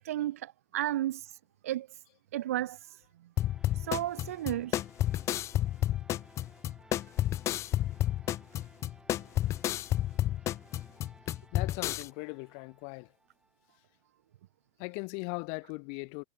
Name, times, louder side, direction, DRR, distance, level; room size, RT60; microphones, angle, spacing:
voice 1, 0.0-2.0 2.3-3.0 3.7-4.8, right 13 dB, 85° right, 1.5 m, -34 dB
sound 1, 3.4-12.1, left 13 dB, 40° left, 0.5 m, -30 dB
sound 2, 3.4-14.3, right 2 dB, 10° right, 7.8 m, -61 dB
voice 2, 11.3-13.1 14.8-16.2, left 40 dB or more, 65° left, 1.3 m, -39 dB
supercardioid pair, 110°, 8 cm